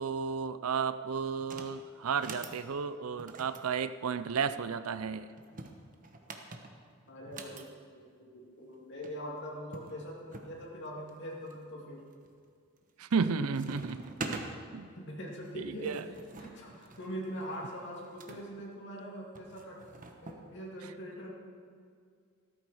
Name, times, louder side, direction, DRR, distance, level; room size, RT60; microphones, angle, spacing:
voice 1, 0.0-5.3 13.0-14.0 14.7-14.9 15.6-16.0, right 5 dB, 80° right, 12 dB, 0.5 m, -33 dB
sound 1, 1.4-1.7 2.1-2.6 3.2-4.6 5.4-7.7 8.7-8.8 9.0-9.1 9.7-10.5 11.1-11.6 12.1-12.5 12.8-13.3 13.5-14.5 15.5-18.4 19.4-20.4, right 3 dB, 40° right, 1.2 m, -45 dB
voice 2, 7.1-7.7 7.9-12.0 14.9-19.8 20.2-21.3, equal, 55° left, -3 dB, 2.5 m, -42 dB
14.5 x 13.5 x 4.8 m, 2.2 s
head